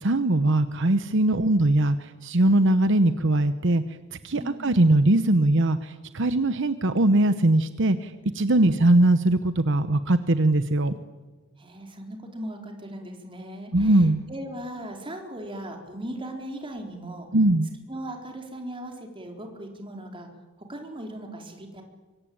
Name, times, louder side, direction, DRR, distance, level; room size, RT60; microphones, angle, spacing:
voice 1, 0.0-3.8 4.1-10.9 13.7-14.2 17.3-17.7, right 1 dB, 60° right, 11 dB, 1.0 m, -21 dB
voice 2, 4.3-4.8 8.6-8.8 11.6-17.3 17.9-20.3 20.6-21.8, right 1 dB, 25° right, 3 dB, 4.1 m, -38 dB
25.0 x 23.5 x 8.7 m, 1.3 s
head